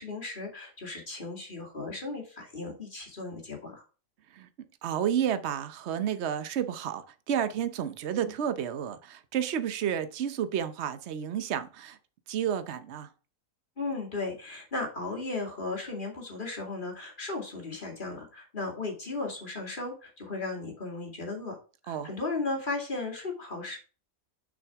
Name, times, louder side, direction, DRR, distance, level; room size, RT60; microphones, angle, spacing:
voice 1, 0.0-3.8 13.8-21.6 21.8-23.8, left 3 dB, 35° left, 2.6 m, -36 dB
voice 2, 4.8-12.0 12.3-13.1 21.9-22.1, right 9 dB, 60° right, 1.0 m, -31 dB
6.3 x 6.3 x 3.6 m
omnidirectional pair, 1.4 m